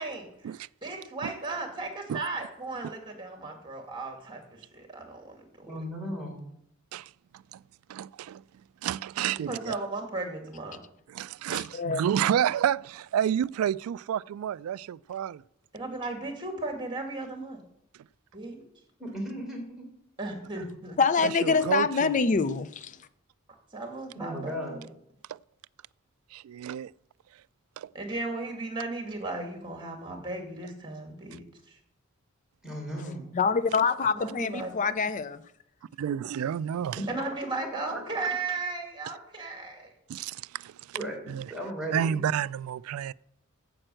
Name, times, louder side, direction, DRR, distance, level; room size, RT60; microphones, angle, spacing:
voice 1, 0.0-5.7 9.4-10.8 15.7-17.6 18.3-18.6 20.2-21.0 21.5-21.6 23.7-24.9 27.9-31.8 34.1-34.7 37.1-39.9, right 3 dB, 25° right, 2.3 m, -36 dB
voice 2, 5.7-6.4 19.0-19.9 24.1-24.8 32.6-33.3 37.0-37.3 40.9-42.2, equal, ahead, 3.8 m, -36 dB
voice 3, 6.9-7.6 7.9-8.4 8.8-9.7 11.1-15.4 21.2-22.1 25.3-25.4 26.3-26.9 27.8-27.9 36.0-37.0 40.1-41.0 41.3-41.5 41.9-43.1, right 9 dB, 85° right, 0.3 m, -30 dB
voice 4, 11.5-12.0 21.0-23.0 33.3-35.4, left 5 dB, 35° left, 0.5 m, -25 dB
8.9 x 7.7 x 7.7 m
head